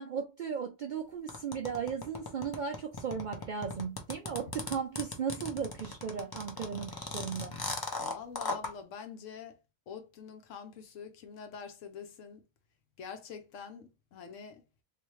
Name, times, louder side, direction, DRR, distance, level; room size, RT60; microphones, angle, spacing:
voice 1, 0.0-7.6, right 6 dB, 65° right, 0.4 m, -36 dB
sound 1, 1.3-8.7, left 3 dB, 30° left, 0.4 m, -37 dB
voice 2, 8.0-9.6 9.9-12.4 13.0-14.6, left 6 dB, 80° left, 1.1 m, -45 dB
3.3 x 2.7 x 3.1 m
omnidirectional pair, 1.3 m